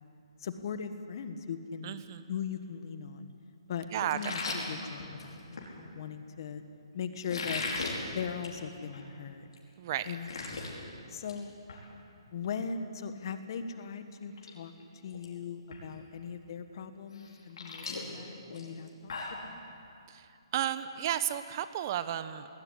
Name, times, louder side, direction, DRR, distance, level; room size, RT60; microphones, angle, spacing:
voice 1, 0.4-2.0 2.3-3.3 3.7-6.6 6.9-7.7 8.1-9.5 10.0-10.3 11.1-11.5 12.3-14.7 15.0-19.6, left 6 dB, 50° left, 9 dB, 1.4 m, -39 dB
voice 2, 1.8-2.3 3.9-4.2 4.5-4.7 9.8-10.1 20.1-20.3 20.5-22.5, right 11 dB, 40° right, 12 dB, 1.1 m, -33 dB
sound 1, 4.1-5.7 7.2-8.0 8.3-8.6 8.9-9.0 9.5-9.6 9.9-10.7 11.1-11.4 11.7-11.8 13.7-13.8 14.2-14.5 14.8-15.3 15.7-15.8 17.1-19.4, left 3 dB, 70° left, 5.1 m, -38 dB
19.5 x 17.5 x 9.9 m, 2.6 s
hypercardioid pair, 150°, 3 cm